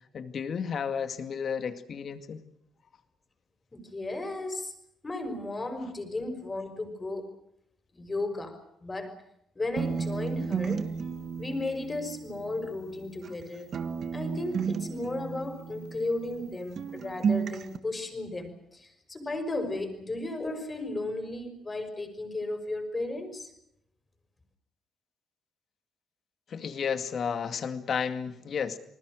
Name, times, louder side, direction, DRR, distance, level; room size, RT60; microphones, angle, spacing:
voice 1, 0.1-2.4 26.5-28.8, left 6 dB, 55° left, 9 dB, 2.2 m, -32 dB
voice 2, 3.7-4.7 5.0-7.3 7.9-9.2 9.6-10.9 11.4-13.7 14.1-23.5, left 2 dB, 25° left, 8 dB, 5.6 m, -35 dB
sound 1, 9.8-13.4 13.7-16.5 16.8-17.8, right 6 dB, 55° right, 1.6 m, -33 dB
30.0 x 20.0 x 6.4 m, 0.76 s
cardioid pair, 90°, 0 cm